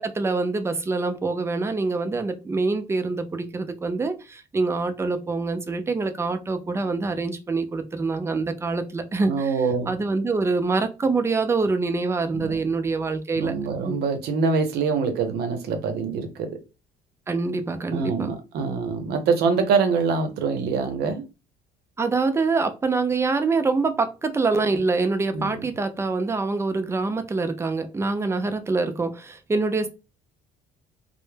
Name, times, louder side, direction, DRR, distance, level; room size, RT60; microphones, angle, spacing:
voice 1, 0.0-9.5 9.9-13.5 13.9-14.0 17.3-18.3 22.0-29.9, right 3 dB, 15° right, 0.4 m, -25 dB
voice 2, 9.3-9.9 12.3-12.6 13.4-16.6 17.9-21.3 25.3-25.6, right 5 dB, 70° right, 0.7 m, -25 dB
2.1 x 2.0 x 3.2 m
cardioid pair, 110°, 17 cm